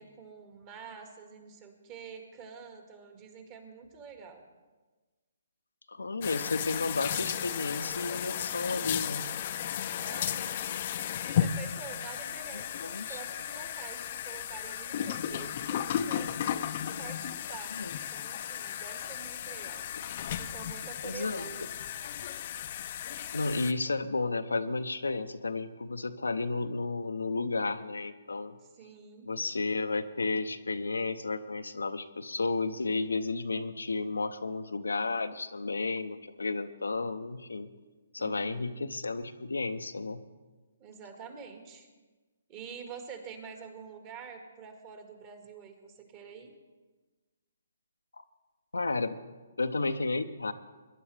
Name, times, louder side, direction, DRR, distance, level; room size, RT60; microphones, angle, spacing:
voice 1, 0.0-4.4 10.0-10.6 11.2-16.3 17.0-17.8 18.1-19.8 20.4-21.7 28.7-29.3 38.2-38.8 40.8-41.9 42.5-46.5, right 6 dB, 30° right, 5 dB, 1.9 m, -47 dB
voice 2, 5.9-9.3 12.8-13.2 17.7-17.9 19.9-20.0 21.0-21.5 23.3-28.5 29.2-37.7 38.1-40.2 48.7-49.2 49.6-50.5, left 3 dB, 80° left, 9 dB, 0.7 m, -32 dB
sound 1, 6.2-23.7, left 10 dB, 45° left, 0.6 m, -34 dB
22.0 x 10.5 x 3.4 m, 1.3 s
figure-of-eight pair, 135°, 0 cm